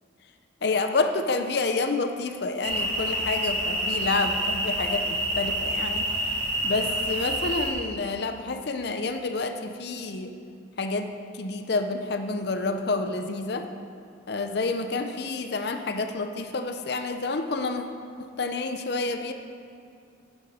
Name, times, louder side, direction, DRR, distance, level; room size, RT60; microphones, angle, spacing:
voice 1, 0.6-6.1 6.6-10.3 10.8-13.7 14.3-17.8 18.2-19.3, left 3 dB, 55° left, 7 dB, 0.6 m, -29 dB
sound 1, 2.6-7.7, right 1 dB, 30° right, 2.2 m, -28 dB
11.5 x 10.5 x 4.2 m, 2.5 s
head